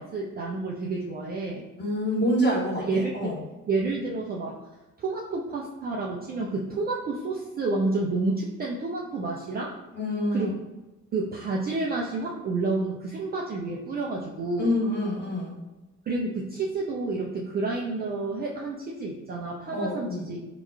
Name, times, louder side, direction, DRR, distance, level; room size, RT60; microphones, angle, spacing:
voice 1, 0.0-1.6 2.8-3.3 3.7-4.6 5.0-9.7 10.3-10.6 11.1-14.7 16.1-20.4, right 3 dB, 25° right, -3 dB, 0.4 m, -29 dB
voice 2, 1.8-3.4 9.9-10.5 14.6-15.5 19.7-20.3, equal, 25° left, -3 dB, 1.0 m, -27 dB
5.6 x 2.2 x 2.3 m, 1.1 s
figure-of-eight pair, 40°, 45 cm